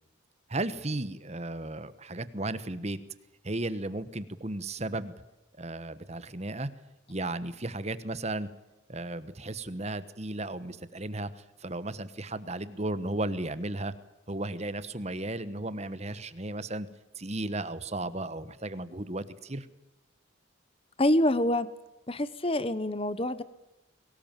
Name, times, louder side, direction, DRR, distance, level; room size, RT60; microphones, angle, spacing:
voice 1, 0.5-3.0 3.4-5.1 5.6-6.7 7.1-8.5 8.9-13.9 14.3-16.9 17.2-19.7, right 2 dB, 30° right, 14 dB, 1.2 m, -35 dB
voice 2, 21.0-21.7 22.1-23.4, left 1 dB, 25° left, 15 dB, 1.0 m, -26 dB
23.0 x 19.0 x 9.0 m, 0.99 s
head